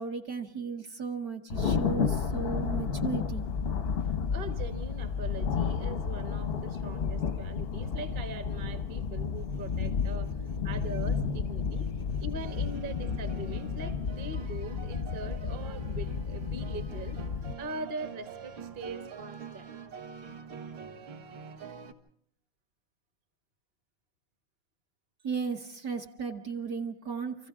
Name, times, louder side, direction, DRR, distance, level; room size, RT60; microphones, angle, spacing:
voice 1, 0.0-3.4 11.8-12.2 25.2-27.5, right 5 dB, 50° right, 2 dB, 1.4 m, -35 dB
Thunder, 1.5-17.5, left 6 dB, 50° left, 0.7 m, -32 dB
voice 2, 4.3-10.3 10.6-11.9 12.2-17.2 17.6-19.7 26.1-26.3, right 2 dB, 30° right, 7 dB, 1.1 m, -41 dB
sound 1, 12.0-21.9, right 6 dB, 65° right, 2.0 m, -46 dB
30.0 x 25.0 x 3.6 m, 0.64 s
omnidirectional pair, 2.3 m